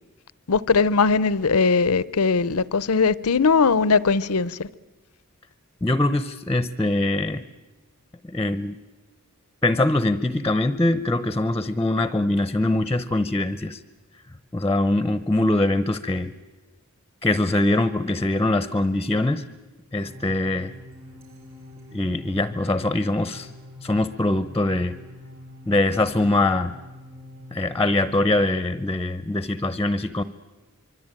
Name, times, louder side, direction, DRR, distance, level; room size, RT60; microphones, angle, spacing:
voice 1, 0.5-4.7, left 4 dB, 80° left, 0.8 m, -20 dB
voice 2, 5.8-7.4 8.2-8.8 9.6-13.8 14.5-16.3 17.2-19.4 19.9-20.7 21.9-23.5 23.8-25.0 25.7-26.7 27.5-30.2, left 2 dB, 15° left, 0.8 m, -23 dB
sound 1, 19.9-28.5, left 1 dB, 65° right, 5.7 m, -44 dB
25.0 x 24.5 x 9.0 m
head